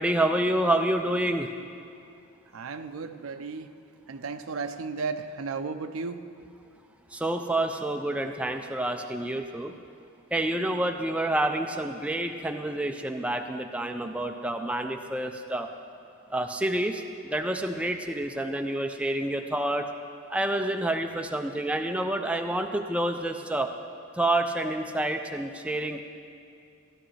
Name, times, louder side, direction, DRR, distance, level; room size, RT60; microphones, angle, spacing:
voice 1, 0.0-1.5 7.1-9.7 10.3-15.7 16.3-17.0 17.3-19.9 20.3-23.7 24.1-26.0, right 1 dB, 5° right, 4 dB, 0.3 m, -28 dB
voice 2, 2.5-3.7 4.1-6.3, right 4 dB, 70° right, 9 dB, 0.5 m, -34 dB
15.0 x 11.5 x 3.2 m, 2.5 s
head